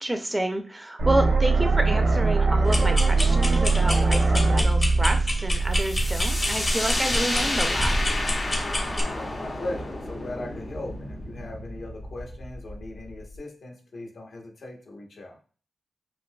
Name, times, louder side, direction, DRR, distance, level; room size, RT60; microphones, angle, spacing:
voice 1, 0.0-8.0, right 1 dB, 15° right, 6 dB, 0.3 m, -29 dB
sound 1, 1.0-7.0, right 3 dB, 75° right, 0.6 m, -22 dB
sound 2, 2.6-9.0, equal, 30° left, 0.6 m, -28 dB
sound 3, 5.8-13.4, left 1 dB, 50° left, 1.3 m, -31 dB
voice 2, 9.1-15.4, left 2 dB, 75° left, 0 dB, 1.0 m, -38 dB
3.7 x 2.7 x 2.2 m, 0.40 s
wide cardioid pair, 115°, 0 cm